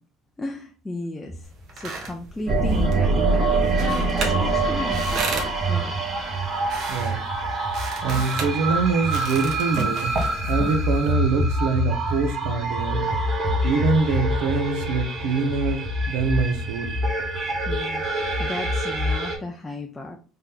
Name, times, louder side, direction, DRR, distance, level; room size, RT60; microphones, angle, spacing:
voice 1, 0.4-3.5 3.8-5.9 17.7-20.2, left 2 dB, 10° left, 1 dB, 0.4 m, -35 dB
sound 1, 1.4-11.1, right 3 dB, 50° right, 1.0 m, -34 dB
sound 2, 2.5-19.4, right 1 dB, 35° right, 1.5 m, -25 dB
voice 2, 6.9-7.2 8.0-10.2 10.5-13.1 13.6-17.0, right 4 dB, 80° right, 8 dB, 0.7 m, -24 dB
3.6 x 2.8 x 3.6 m, 0.38 s
cardioid pair, 140°, 0 cm